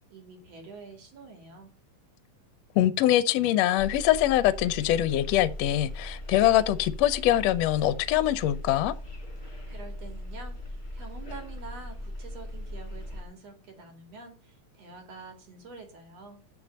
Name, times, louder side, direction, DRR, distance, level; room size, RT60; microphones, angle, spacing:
voice 1, 0.1-1.7 9.4-16.4, right 3 dB, 60° right, 3.6 m, -47 dB
voice 2, 2.8-8.9, left 13 dB, 70° left, 1.8 m, -23 dB
sound 1, 3.8-13.2, left 1 dB, 15° left, 2.6 m, -39 dB
7.5 x 7.1 x 7.4 m
omnidirectional pair, 3.3 m